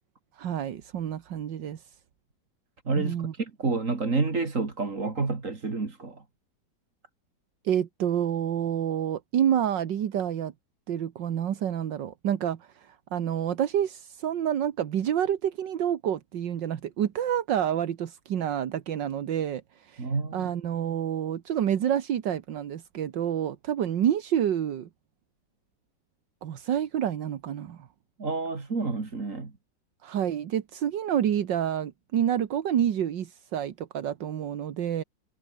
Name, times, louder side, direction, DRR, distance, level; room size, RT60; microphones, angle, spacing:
voice 1, 0.4-1.8 3.0-3.3 7.6-10.5 10.9-24.9 26.4-27.9 30.0-35.0, right 9 dB, 80° right, 1.9 m, -28 dB
voice 2, 2.9-6.2 20.0-20.5 28.2-29.5, right 4 dB, 45° right, 3.1 m, -29 dB
omnidirectional pair, 1.9 m